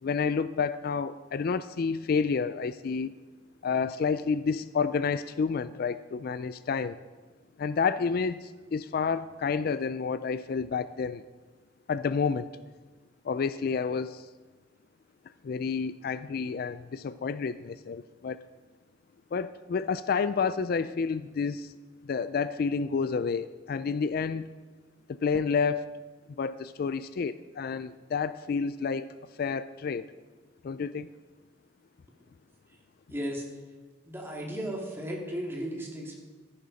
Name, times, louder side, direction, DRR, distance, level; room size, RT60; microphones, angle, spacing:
voice 1, 0.0-3.1 3.6-7.0 7.6-11.2 11.9-12.5 13.2-14.3 15.4-18.4 19.3-21.7 22.0-24.5 25.1-25.9 26.4-29.1 29.4-30.1 30.6-31.1, left 5 dB, 55° left, 14 dB, 0.3 m, -29 dB
voice 2, 33.1-33.6 34.0-36.1, equal, 15° right, -1 dB, 2.4 m, -35 dB
14.0 x 11.0 x 4.1 m, 1.3 s
head